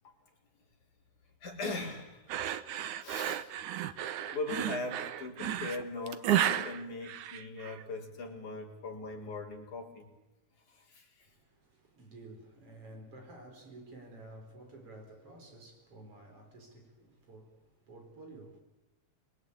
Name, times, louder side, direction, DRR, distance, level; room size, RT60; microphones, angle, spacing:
voice 1, 1.4-2.3 3.0-3.5 4.3-10.1 10.7-11.3, left 3 dB, 75° left, 5.8 m, -40 dB
sound 1, 2.3-7.8, right 11 dB, 75° right, 2.4 m, -33 dB
voice 2, 11.3-18.6, right 2 dB, 45° right, 5.7 m, -52 dB
26.0 x 23.0 x 8.8 m
omnidirectional pair, 3.5 m